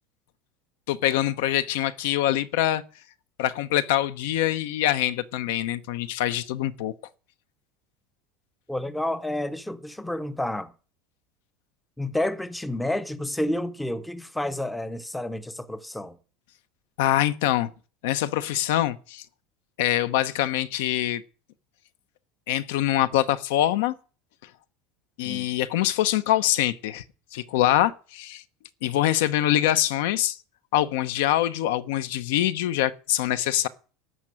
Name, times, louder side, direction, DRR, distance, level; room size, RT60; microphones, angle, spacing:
voice 1, 0.9-2.8 3.4-6.9 17.0-17.7 18.0-19.2 19.8-21.2 22.5-23.9 25.2-27.0 27.3-28.4 28.8-30.4 30.7-33.7, left 13 dB, 75° left, 0.8 m, -24 dB
voice 2, 8.7-10.7 12.0-16.2 25.2-25.5, left 1 dB, 5° left, 0.6 m, -30 dB
12.5 x 5.8 x 8.9 m
supercardioid pair, 170°, 0 cm